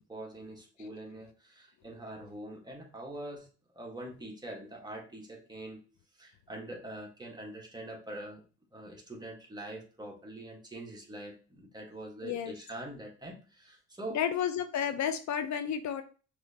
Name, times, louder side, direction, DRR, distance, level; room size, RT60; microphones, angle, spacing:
voice 1, 0.1-3.5 3.7-5.8 6.1-8.4 8.7-14.2, right 1 dB, 15° right, -1 dB, 1.6 m, -44 dB
voice 2, 12.2-12.5 14.1-16.0, left 8 dB, 65° left, 9 dB, 0.6 m, -31 dB
6.0 x 3.1 x 2.8 m, 0.36 s
cardioid pair, 90°, 30 cm